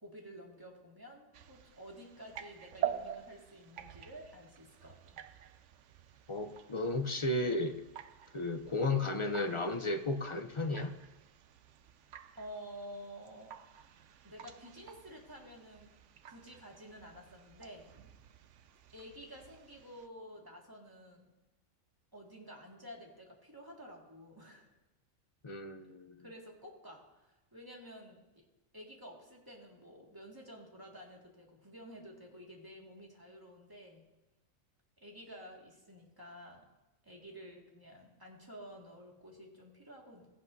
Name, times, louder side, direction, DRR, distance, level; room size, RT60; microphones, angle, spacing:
voice 1, 0.0-5.2 12.4-13.6 14.2-15.9 16.3-18.0 18.9-21.3 22.1-24.7 26.2-28.5 28.7-34.1 35.0-36.7 37.0-40.3, equal, 15° right, -2 dB, 2.1 m, -51 dB
sound 1, 1.3-20.1, right 10 dB, 70° right, 0.9 m, -47 dB
voice 2, 6.3-7.8 8.3-11.0 25.4-26.3, left 2 dB, 35° left, 7 dB, 0.5 m, -34 dB
17.0 x 16.5 x 2.7 m, 1.0 s
omnidirectional pair, 1.3 m